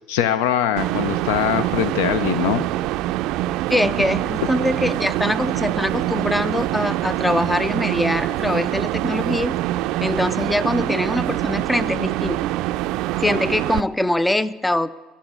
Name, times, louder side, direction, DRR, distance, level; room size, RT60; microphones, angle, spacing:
voice 1, 0.1-2.6, left 10 dB, 85° left, 14 dB, 0.5 m, -22 dB
sound 1, 0.8-13.8, right 15 dB, 75° right, 0.3 m, -24 dB
voice 2, 3.7-9.6 10.0-12.5 13.2-14.9, left 1 dB, 10° left, 17 dB, 0.5 m, -23 dB
15.5 x 7.3 x 9.3 m, 1.4 s
supercardioid pair, 85°, 0 cm